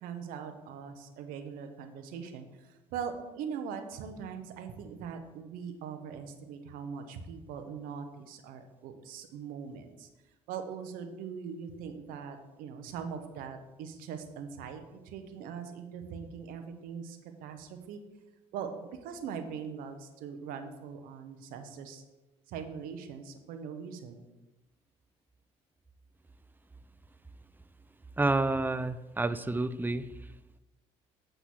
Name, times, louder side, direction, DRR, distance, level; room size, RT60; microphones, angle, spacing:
voice 1, 0.0-10.1 10.5-18.0 18.5-22.0 22.5-24.3, right 6 dB, 75° right, 7 dB, 1.0 m, -41 dB
voice 2, 28.2-30.1, right 2 dB, 15° right, 14 dB, 0.5 m, -29 dB
8.3 x 3.9 x 6.2 m, 1.1 s
supercardioid pair, 75°, 15 cm